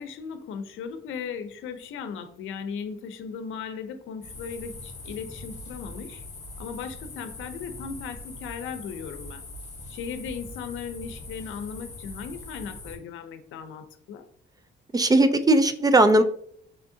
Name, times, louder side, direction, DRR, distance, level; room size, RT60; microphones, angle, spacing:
voice 1, 0.0-6.2 6.6-9.4 9.9-14.3, left 6 dB, 80° left, 9 dB, 0.6 m, -37 dB
sound 1, 4.2-13.0, left 2 dB, 35° left, 1.2 m, -42 dB
voice 2, 14.9-16.2, right 2 dB, 20° right, 10 dB, 0.4 m, -18 dB
4.9 x 3.5 x 2.7 m, 0.63 s
cardioid pair, 90°, 20 cm